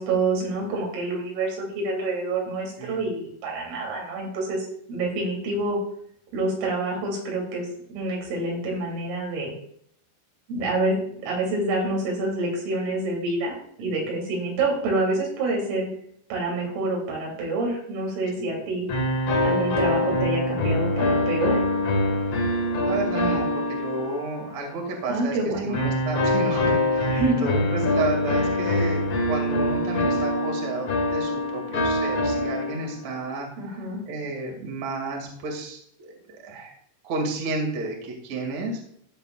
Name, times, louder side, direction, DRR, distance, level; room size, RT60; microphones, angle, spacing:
voice 1, 0.0-4.6 4.9-5.8 6.3-9.6 10.5-15.9 16.3-18.9 19.4-21.6 25.1-25.8 27.1-27.5 33.6-34.0, right 2 dB, 80° right, -1 dB, 5.5 m, -27 dB
sound 1, 18.9-24.7 25.7-33.1, left 1 dB, 90° left, 1.4 m, -24 dB
voice 2, 22.8-25.4 25.6-33.5 34.1-36.7 37.0-38.8, right 2 dB, 45° right, 0 dB, 2.7 m, -31 dB
16.0 x 7.1 x 2.4 m, 0.67 s
omnidirectional pair, 5.8 m